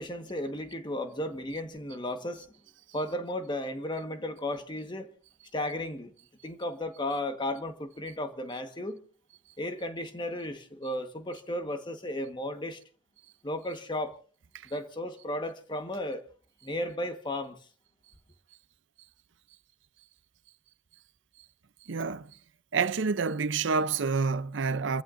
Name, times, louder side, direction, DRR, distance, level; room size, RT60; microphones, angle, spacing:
voice 1, 0.0-2.5 2.9-5.1 5.5-6.1 6.4-9.0 9.6-12.8 13.4-14.2 14.6-16.2 16.6-17.6, left 1 dB, 25° left, 1.4 m, -34 dB
voice 2, 21.9-22.3 22.7-25.0, right 5 dB, 80° right, 0.6 m, -28 dB
29.5 x 15.0 x 2.6 m
head